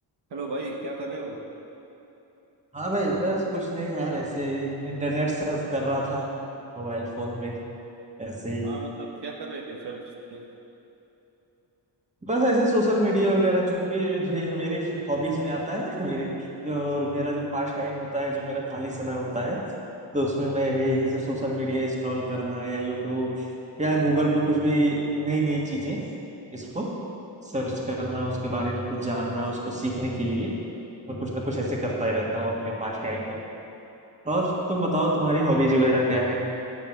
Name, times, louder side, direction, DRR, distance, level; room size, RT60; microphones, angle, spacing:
voice 1, 0.3-1.4 8.6-10.5, right 2 dB, 65° right, 0 dB, 1.1 m, -35 dB
voice 2, 2.7-6.3 6.8-7.6 8.2-8.7 12.2-19.6 20.1-23.5 23.8-26.0 26.5-26.9 27.4-30.5 31.1-33.2 34.2-36.3, right 1 dB, 15° right, -3 dB, 1.6 m, -26 dB
9.6 x 7.1 x 6.0 m, 3.0 s
wide cardioid pair, 120°, 44 cm